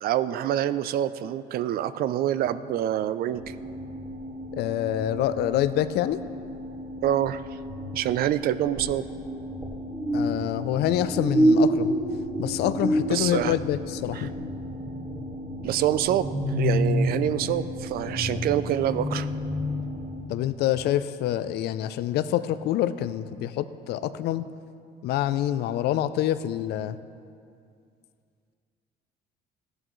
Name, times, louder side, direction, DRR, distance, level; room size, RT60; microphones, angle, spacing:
voice 1, 0.0-3.6 7.0-7.4 7.9-9.1 13.1-13.5 14.1-14.3 15.6-16.3 16.6-19.3, right 11 dB, 65° right, 14 dB, 0.4 m, -26 dB
sound 1, 3.3-20.2, equal, 20° right, 1.9 m, -29 dB
voice 2, 4.5-6.2 10.1-11.9 12.4-14.5 17.2-17.5 20.3-24.5 25.0-27.0, left 12 dB, 75° left, 13 dB, 0.5 m, -26 dB
15.0 x 11.0 x 3.1 m, 2.4 s
cardioid pair, 110°, 17 cm